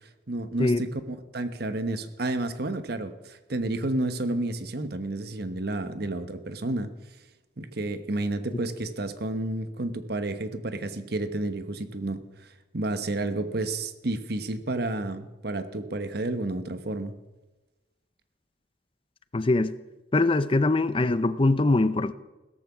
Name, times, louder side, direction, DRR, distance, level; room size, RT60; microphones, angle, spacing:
voice 1, 0.3-6.9 7.6-12.2 12.7-17.1, right 2 dB, 60° right, 1.2 m, -31 dB
voice 2, 19.3-19.7 20.1-22.1, left 2 dB, 30° left, 0.6 m, -22 dB
16.5 x 14.0 x 6.1 m
head